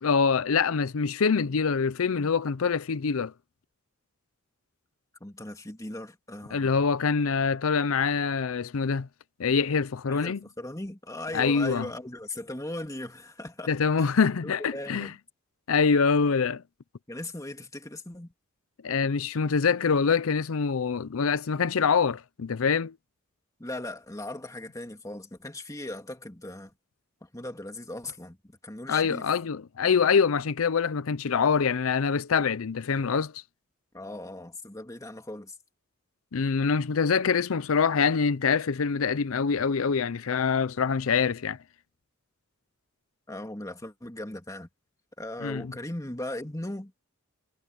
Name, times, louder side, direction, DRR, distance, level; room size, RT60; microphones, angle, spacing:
voice 1, 0.0-3.3 6.5-9.1 9.4-10.4 11.3-11.9 13.7-15.1 15.7-16.6 18.8-22.9 28.9-33.4 36.3-41.6 45.4-45.7, left 5 dB, 80° left, 0.6 m, -25 dB
voice 2, 5.2-6.8 10.1-13.7 14.0-14.1 14.4-15.2 17.1-18.3 23.6-26.7 27.2-29.3 33.9-35.5 43.3-44.7 45.2-46.9, left 1 dB, 15° left, 2.4 m, -38 dB
head